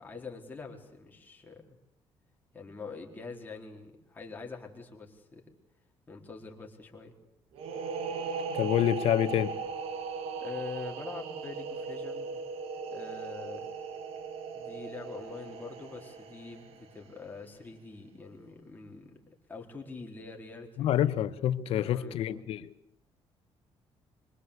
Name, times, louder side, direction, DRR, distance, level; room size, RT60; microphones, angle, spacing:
voice 1, 0.0-1.7 2.5-5.4 6.1-7.1 10.4-13.7 14.5-20.9 21.7-22.4, left 4 dB, 15° left, 0 dB, 4.3 m, -45 dB
sound 1, 7.6-17.1, right 5 dB, 80° right, 2.3 m, -38 dB
voice 2, 8.5-9.6 20.8-22.7, left 11 dB, 75° left, 13 dB, 1.4 m, -27 dB
26.0 x 24.0 x 8.3 m, 0.74 s
cardioid pair, 155°, 10 cm